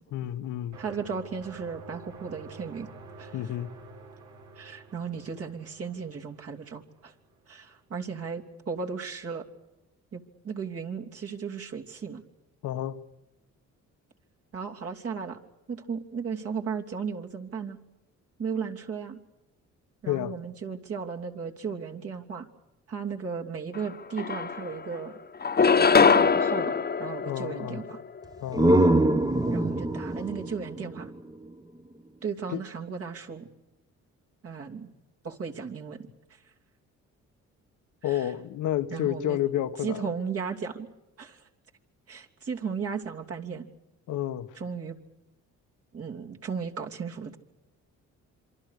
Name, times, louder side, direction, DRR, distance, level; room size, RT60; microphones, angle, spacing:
voice 1, 0.1-0.8 3.3-3.7 12.6-13.0 20.1-20.3 27.2-27.8 28.4-28.7 32.5-32.6 38.0-40.1 44.1-44.5, left 12 dB, 80° left, 1.4 m, -30 dB
sound 1, 0.7-7.4, right 3 dB, 75° right, 5.7 m, -48 dB
voice 2, 0.8-2.9 3.2-3.4 4.5-7.1 7.5-9.5 10.1-12.2 14.5-15.4 15.7-17.8 18.4-19.2 20.0-22.5 22.9-25.1 25.6-28.0 29.5-31.1 32.2-33.5 34.4-34.9 35.2-36.0 36.3-36.5 38.0-38.3 38.9-39.4 39.8-40.9 41.2-41.5 42.1-43.7 44.5-45.0 45.9-47.4, right 6 dB, 50° right, 3.1 m, -35 dB
sound 2, 23.7-23.8 24.2-24.9 25.4-28.0, left 5 dB, 30° left, 1.3 m, -22 dB
sound 3, 28.2-31.9, right 1 dB, 10° right, 1.2 m, -24 dB
27.0 x 24.5 x 6.7 m
cardioid pair, 90°, 30 cm